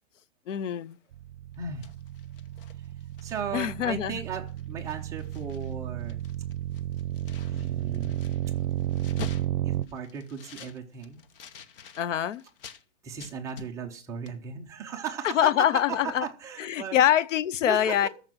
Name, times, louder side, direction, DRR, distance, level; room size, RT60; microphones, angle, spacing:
voice 1, 0.5-1.0 3.5-4.2 12.0-12.4 15.3-16.3 16.6-18.1, left 10 dB, 75° left, 0.8 m, -24 dB
sound 1, 1.1-9.8, right 12 dB, 65° right, 0.7 m, -33 dB
sound 2, 1.5-3.6 4.0-4.2 4.5-5.7 6.0-12.8 13.2-14.0 14.3-14.4, left 6 dB, 45° left, 1.2 m, -47 dB
voice 2, 1.6-1.9 2.8-2.9 3.2-6.2 7.5-8.2 9.6-11.2 13.0-17.0 17.6-18.1, right 6 dB, 10° right, 0.6 m, -36 dB
14.0 x 5.2 x 9.0 m
hypercardioid pair, 170°, 37 cm